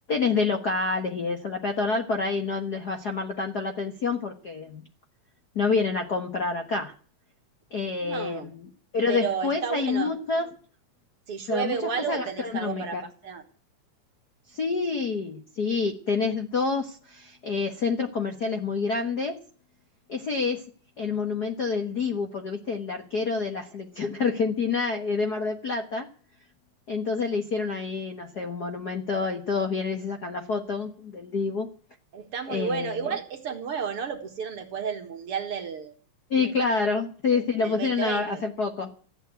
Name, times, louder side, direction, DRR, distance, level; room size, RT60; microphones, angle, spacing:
voice 1, 0.1-4.8 5.5-6.9 7.7-8.7 8.9-10.5 11.5-13.0 14.5-19.4 20.1-20.6 21.0-26.1 26.9-31.7 32.5-33.1 36.3-38.9, left 4 dB, 45° left, 4 dB, 1.3 m, -28 dB
voice 2, 8.0-8.5 9.1-10.1 11.3-13.4 32.1-35.9 37.3-38.4, right 7 dB, 50° right, 6 dB, 2.2 m, -32 dB
14.5 x 9.1 x 9.5 m, 0.42 s
omnidirectional pair, 3.6 m